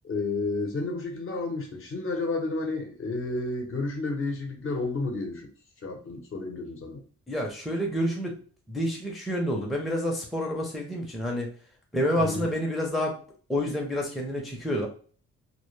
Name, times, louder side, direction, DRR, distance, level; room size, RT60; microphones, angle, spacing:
voice 1, 0.0-5.5 5.8-7.0 12.2-12.5, left 3 dB, 45° left, 2 dB, 0.7 m, -31 dB
voice 2, 7.3-8.4 8.7-11.5 11.9-13.2 13.5-14.9, equal, ahead, -1 dB, 0.5 m, -28 dB
2.1 x 2.0 x 3.1 m, 0.42 s
cardioid pair, 90°, 30 cm